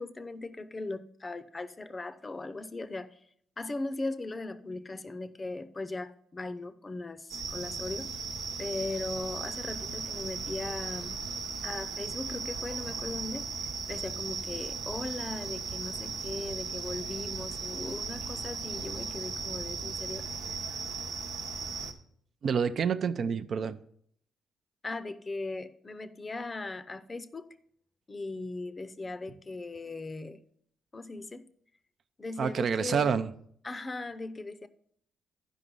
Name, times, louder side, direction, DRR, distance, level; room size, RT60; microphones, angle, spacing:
voice 1, 0.0-3.2 3.6-8.1 8.6-11.1 11.6-13.5 13.9-20.3 24.8-27.5 28.1-30.4 30.9-31.5 32.2-33.2 33.6-34.7, left 2 dB, 25° left, 0.6 m, -38 dB
sound 1, 7.3-21.9, right 4 dB, 85° right, 1.1 m, -37 dB
voice 2, 22.4-23.8 32.4-33.3, right 6 dB, 55° right, 0.5 m, -28 dB
11.0 x 5.1 x 5.4 m
cardioid pair, 90°, 0 cm